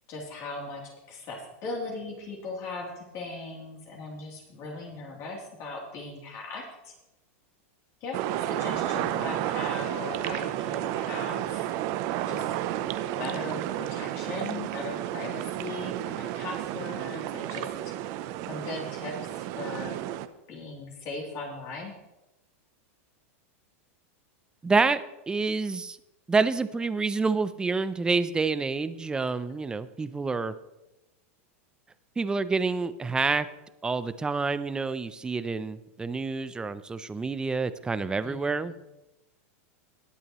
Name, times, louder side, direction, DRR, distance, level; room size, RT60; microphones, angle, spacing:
voice 1, 0.1-6.9 8.0-11.7 12.3-12.5 13.2-17.9 18.5-20.0 20.5-21.9 38.2-38.8, left 3 dB, 45° left, -2 dB, 3.1 m, -38 dB
sound 1, 8.1-20.3, right 13 dB, 50° right, 0.7 m, -32 dB
voice 2, 24.6-26.0 26.3-30.5 32.2-33.5 33.8-38.7, right 4 dB, 10° right, 14 dB, 0.5 m, -28 dB
19.5 x 8.3 x 3.1 m, 0.97 s
supercardioid pair, 140°, 7 cm